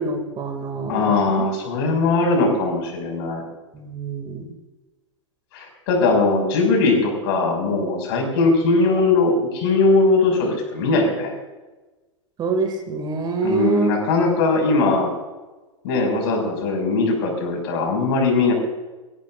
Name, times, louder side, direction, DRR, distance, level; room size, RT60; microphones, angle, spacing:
voice 1, 0.0-1.5 3.7-4.5 12.4-13.9, right 4 dB, 25° right, 6 dB, 2.4 m, -25 dB
voice 2, 0.9-3.4 5.5-11.3 13.4-15.1 15.8-18.5, left 3 dB, 50° left, 3 dB, 5.9 m, -20 dB
24.0 x 16.5 x 2.5 m, 1.2 s
figure-of-eight pair, 95°, 16 cm